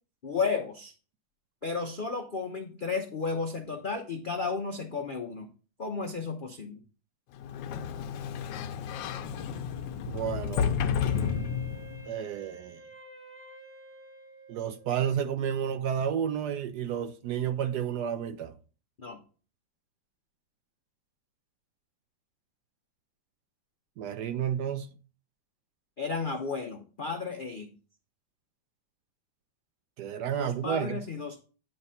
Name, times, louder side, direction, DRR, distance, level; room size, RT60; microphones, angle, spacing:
voice 1, 0.2-0.9 1.6-5.5 5.8-6.8 19.0-19.2 26.0-27.7 30.4-31.4, left 4 dB, 65° left, 0.5 m, -33 dB
Sliding door, 7.4-12.1, left 7 dB, 80° left, 1.3 m, -31 dB
voice 2, 10.1-10.7 12.1-12.8 14.5-18.5 24.0-24.9 30.0-31.0, right 8 dB, 70° right, 1.0 m, -31 dB
Wind instrument woodwind instrument, 11.0-15.2, right 3 dB, 15° right, 0.5 m, -50 dB
9.6 x 3.3 x 5.5 m
omnidirectional pair, 2.1 m